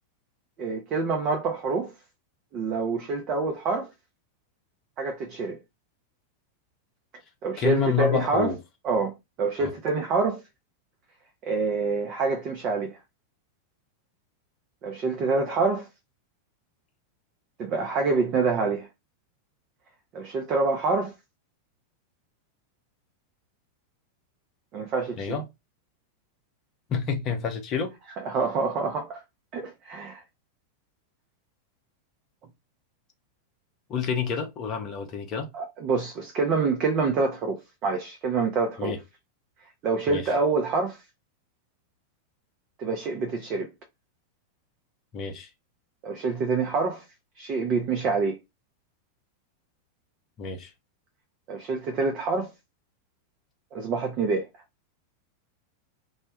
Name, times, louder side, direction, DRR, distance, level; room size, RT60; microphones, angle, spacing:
voice 1, 0.6-1.9 2.5-3.9 5.0-5.6 7.4-8.5 8.8-10.4 11.4-13.0 14.8-15.9 17.6-18.9 20.1-21.1 24.7-25.4 28.3-29.2 29.5-30.2 35.5-38.9 39.8-41.0 42.8-43.7 46.0-47.0 47.4-48.4 51.5-52.5 53.7-54.5, right 4 dB, 35° right, 0.5 m, -26 dB
voice 2, 7.6-8.6 9.6-9.7 25.2-25.4 26.9-28.0 33.9-35.5 38.8-39.0 40.1-40.3 45.1-45.5 50.4-50.7, left 6 dB, 35° left, 0.6 m, -28 dB
2.1 x 2.1 x 2.7 m
figure-of-eight pair, 90°, 0 cm